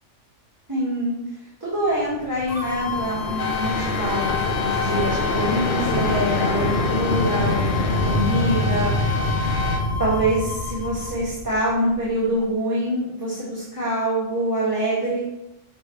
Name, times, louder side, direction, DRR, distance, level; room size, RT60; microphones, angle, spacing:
voice 1, 0.7-1.2 1.6-8.9 10.0-15.2, right 1 dB, 15° right, -8 dB, 1.8 m, -25 dB
sound 1, 2.1-12.1, left 2 dB, 50° left, 0.9 m, -25 dB
sound 2, 2.5-11.1, left 6 dB, 20° left, 0.5 m, -33 dB
sound 3, 3.4-9.8, left 4 dB, 65° left, 1.2 m, -30 dB
6.6 x 6.1 x 3.3 m, 0.88 s
omnidirectional pair, 1.3 m